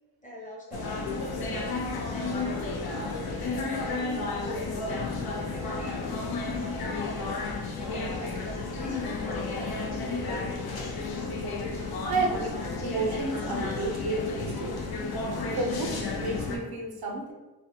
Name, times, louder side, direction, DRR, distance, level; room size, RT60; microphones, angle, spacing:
voice 1, 0.2-1.7 2.4-4.7 5.5-6.1 6.8-7.4 7.7-10.9, equal, 20° left, -3 dB, 0.7 m, -44 dB
sound 1, 0.7-16.6, left 3 dB, 85° left, 0.5 m, -32 dB
voice 2, 12.0-14.9 15.4-17.3, right 3 dB, 80° right, 0 dB, 0.6 m, -32 dB
2.4 x 2.1 x 2.8 m, 1.1 s
wide cardioid pair, 85°, 37 cm